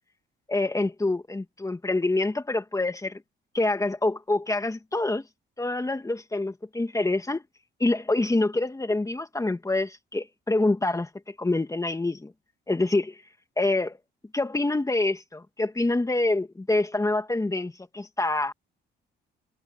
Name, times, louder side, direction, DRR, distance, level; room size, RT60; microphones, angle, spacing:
voice 1, 0.5-3.2 3.5-5.3 5.6-7.4 7.8-12.3 12.7-13.2 13.6-14.0 14.3-18.5, left 2 dB, 15° left, 2.2 m, -26 dB
cardioid pair, 90°, 20 cm